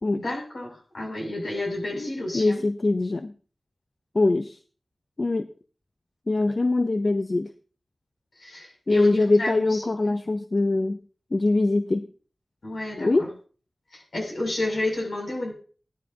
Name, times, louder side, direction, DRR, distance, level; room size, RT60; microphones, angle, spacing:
voice 1, 0.1-2.6 8.4-9.8 12.6-13.3 13.9-15.5, left 1 dB, 75° left, 0 dB, 7.1 m, -31 dB
voice 2, 2.0-3.3 4.1-4.6 5.2-5.5 6.3-7.5 8.9-11.0 11.3-12.1 13.0-13.3, left 2 dB, 50° left, 9 dB, 0.6 m, -23 dB
16.5 x 12.0 x 2.8 m, 0.40 s
wide cardioid pair, 70°, 0 cm